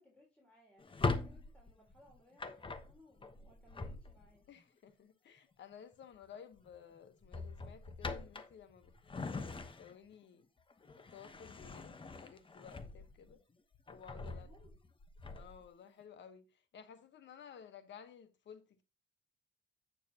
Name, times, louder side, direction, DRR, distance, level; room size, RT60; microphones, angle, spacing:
voice 1, 0.0-4.5 14.2-14.7, left 1 dB, 5° left, 3.6 m, -65 dB
Drawer open or close, 0.8-4.5 5.9-6.2 6.6-6.8 7.2-10.1 10.6-13.3 13.7-15.7, left 3 dB, 25° left, 1.0 m, -42 dB
voice 2, 4.5-8.9 9.2-10.5 11.1-13.4 13.9-14.5 15.3-18.8, left 7 dB, 65° left, 1.2 m, -55 dB
8.7 x 6.8 x 2.8 m
cardioid pair, 90°, 20 cm